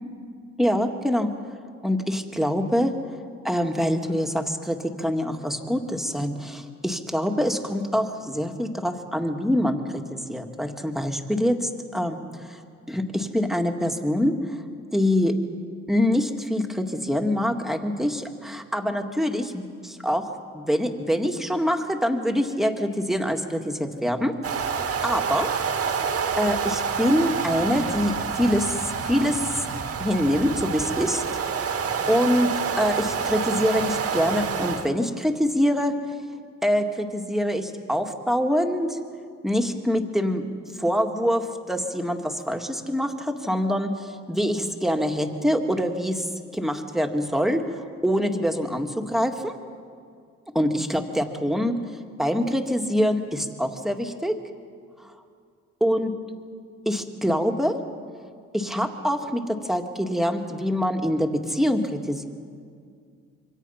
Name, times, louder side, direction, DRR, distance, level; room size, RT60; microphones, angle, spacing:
voice 1, 0.6-1.3 1.8-2.9 3.4-12.6 12.9-14.4 14.9-15.4 15.9-24.6 25.0-25.5 26.4-29.6 30.0-31.2 32.1-36.0 36.6-39.0 39.4-40.4 40.8-49.5 50.5-51.8 52.2-54.4 55.8-56.1 56.9-57.8 58.5-62.2, equal, ahead, 4 dB, 2.1 m, -25 dB
sound 1, 24.4-34.9, right 6 dB, 50° right, 1.8 m, -28 dB
27.0 x 24.0 x 5.8 m, 2.2 s
cardioid pair, 90°, 30 cm